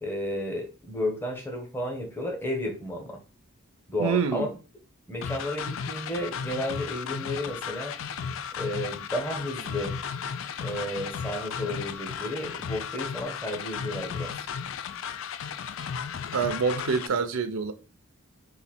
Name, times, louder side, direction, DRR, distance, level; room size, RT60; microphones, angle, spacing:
voice 1, 0.0-3.2 3.9-4.5 5.1-7.9 8.6-10.0 10.6-14.3, left 1 dB, 10° left, 0.9 m, -32 dB
voice 2, 4.0-4.5 16.3-17.7, right 5 dB, 85° right, 0.5 m, -26 dB
sound 1, 5.2-17.1, left 6 dB, 70° left, 0.4 m, -35 dB
4.0 x 2.6 x 4.2 m
head